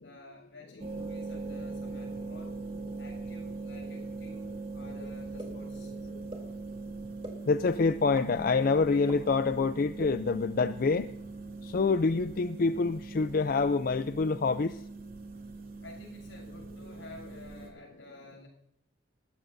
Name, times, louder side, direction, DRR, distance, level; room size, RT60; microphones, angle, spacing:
voice 1, 0.0-2.6 3.0-5.9 15.8-18.5, left 2 dB, 85° left, 1 dB, 7.0 m, -51 dB
sound 1, 0.8-17.7, right 3 dB, 50° right, 3.0 m, -41 dB
sound 2, 5.4-5.5 6.3-6.4 7.2-7.3 8.2-8.3 9.1-9.2 10.0-10.1, right 1 dB, 30° right, 3.3 m, -39 dB
voice 2, 7.5-11.1 11.7-14.7, left 4 dB, 50° left, 11 dB, 0.4 m, -26 dB
20.5 x 14.5 x 2.7 m, 0.76 s
head